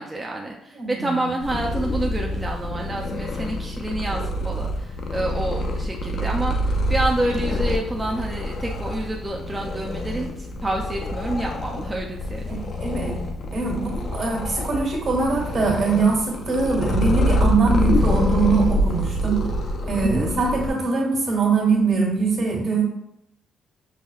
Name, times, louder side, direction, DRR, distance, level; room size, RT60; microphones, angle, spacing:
voice 1, 0.0-12.6 20.0-20.3, right 1 dB, 15° right, -1 dB, 0.4 m, -28 dB
voice 2, 0.8-1.3 12.5-13.2 13.5-19.4 19.8-22.8, right 4 dB, 60° right, -2 dB, 1.4 m, -22 dB
Purr, 1.4-20.7, left 1 dB, 55° left, 0.5 m, -26 dB
5.4 x 2.1 x 2.3 m, 0.79 s
cardioid pair, 100°, 0 cm